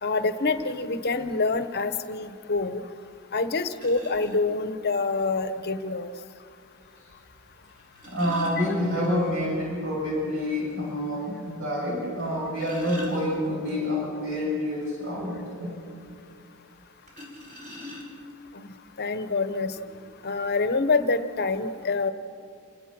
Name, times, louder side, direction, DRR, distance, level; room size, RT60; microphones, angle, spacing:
voice 1, 0.0-2.8 3.3-6.1 8.6-8.7 18.5-18.7 19.0-19.7 20.2-22.1, left 3 dB, 45° left, 10 dB, 1.0 m, -26 dB
sound 1, 3.7-4.4 5.8-5.9 7.7-9.4 9.8-9.9 10.3-10.4 10.9-11.0 12.2-13.7 17.1-18.4 19.3-19.4 19.8-20.0, left 1 dB, 35° right, 4.9 m, -42 dB
voice 2, 8.1-15.7, left 1 dB, 60° right, -3 dB, 7.7 m, -28 dB
27.5 x 18.0 x 6.1 m, 2.5 s
head